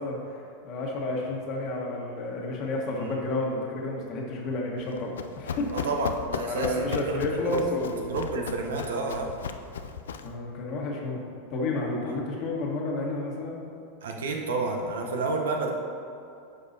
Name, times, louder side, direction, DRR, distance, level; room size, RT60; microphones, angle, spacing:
voice 1, 0.0-5.9 6.5-7.9 10.2-11.2 11.5-13.6, left 2 dB, 50° left, -2 dB, 1.5 m, -31 dB
Run, 4.8-10.4, left 6 dB, 80° left, 0.3 m, -36 dB
voice 2, 5.7-7.6 8.0-9.3 12.1-12.2 14.0-15.7, right 3 dB, 80° right, 2 dB, 0.9 m, -30 dB
9.3 x 5.4 x 2.8 m, 2.6 s
hypercardioid pair, 95°, 0 cm